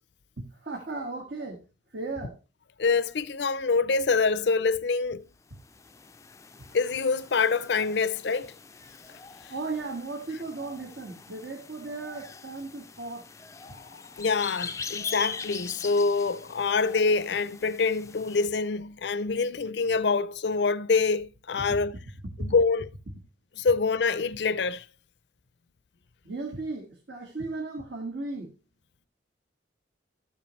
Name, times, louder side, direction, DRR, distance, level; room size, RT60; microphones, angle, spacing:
voice 1, 0.4-1.6 1.9-2.4 9.5-13.3 22.4-22.5 26.2-28.5, right 3 dB, 75° right, 1.9 m, -36 dB
voice 2, 2.8-5.2 6.7-8.5 14.2-21.9 22.4-22.9 23.6-24.8, left 4 dB, 65° left, 0.5 m, -25 dB
sound 1, 5.5-18.5, left 5 dB, 15° left, 0.4 m, -42 dB
13.5 x 7.2 x 3.2 m
head